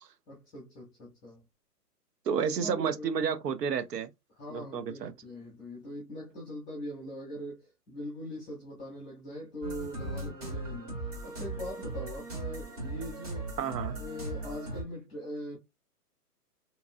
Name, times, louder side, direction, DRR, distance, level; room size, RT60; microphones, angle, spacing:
voice 1, 0.3-1.4 2.4-3.1 4.3-11.0 11.2-13.6 14.0-15.6, equal, 5° left, 0.6 m, -41 dB
voice 2, 2.3-4.1 4.5-5.1 13.6-14.0, right 6 dB, 90° right, 0.8 m, -31 dB
sound 1, 9.6-14.8, right 2 dB, 25° right, 0.7 m, -38 dB
3.0 x 2.6 x 2.3 m
hypercardioid pair, 165°, 47 cm